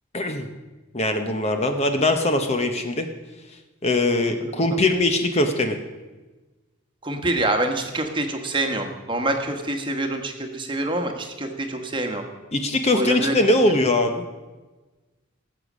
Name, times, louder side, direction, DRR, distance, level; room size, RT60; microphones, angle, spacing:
voice 1, 0.1-0.5 0.9-3.1 3.8-5.8 12.5-14.2, left 2 dB, 30° left, 6 dB, 0.9 m, -21 dB
voice 2, 7.0-12.3 12.9-13.3, right 2 dB, 20° right, 4 dB, 1.3 m, -26 dB
18.5 x 8.1 x 6.2 m, 1.2 s
head